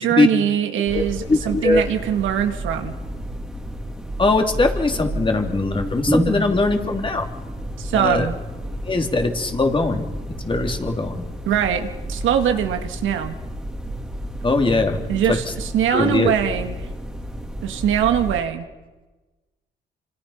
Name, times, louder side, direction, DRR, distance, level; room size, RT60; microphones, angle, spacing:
voice 1, 0.0-2.9 7.8-8.4 11.5-13.4 15.1-16.7 17.6-18.7, right 9 dB, 85° right, 6 dB, 2.0 m, -22 dB
voice 2, 0.9-1.8 4.2-7.3 7.9-8.3 8.8-10.0 10.4-11.2 14.4-15.0 15.3-15.5 15.9-16.3, left 3 dB, 25° left, 4 dB, 3.0 m, -21 dB
sound 1, 0.9-18.4, equal, ahead, 3.1 m, -30 dB
26.5 x 25.5 x 5.8 m, 1.2 s
cardioid pair, 90°, 20 cm